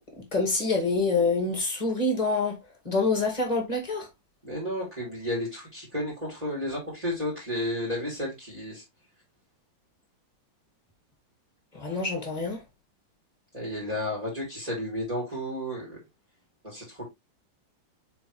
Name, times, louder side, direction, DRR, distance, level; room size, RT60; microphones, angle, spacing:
voice 1, 0.2-4.1 11.7-12.6, left 3 dB, 20° left, 2.3 m, -26 dB
voice 2, 4.4-8.8 13.5-16.0 16.6-17.0, left 1 dB, 20° right, 3.1 m, -32 dB
7.0 x 4.7 x 3.2 m
omnidirectional pair, 1.9 m